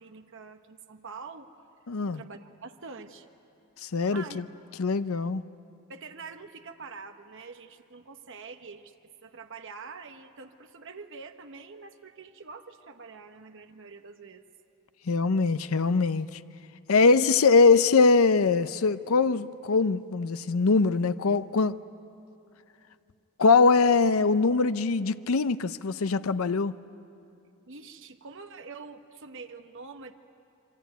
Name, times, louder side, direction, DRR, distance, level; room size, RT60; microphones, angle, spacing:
voice 1, 0.0-1.5 2.0-3.3 4.1-4.4 5.9-8.9 9.2-14.4 27.7-30.1, right 4 dB, 60° right, 6 dB, 1.2 m, -45 dB
voice 2, 1.9-2.2 3.8-4.4 4.8-5.4 15.1-16.4 16.9-21.8 23.4-26.7, left 4 dB, 70° left, 13 dB, 0.6 m, -22 dB
26.5 x 24.5 x 9.3 m, 2.6 s
head